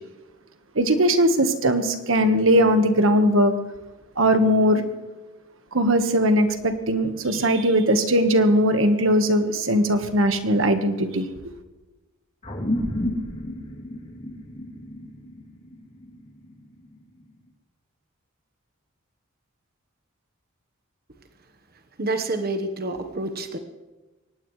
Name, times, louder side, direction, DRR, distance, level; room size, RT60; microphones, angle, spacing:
voice 1, 0.7-3.5 4.2-4.8 5.7-11.5, equal, 70° right, 7 dB, 1.5 m, -20 dB
sound 1, 12.4-17.2, left 1 dB, 35° left, 2.8 m, -32 dB
voice 2, 22.0-23.6, right 2 dB, 50° right, 7 dB, 1.3 m, -28 dB
23.0 x 18.5 x 3.3 m, 1.1 s
head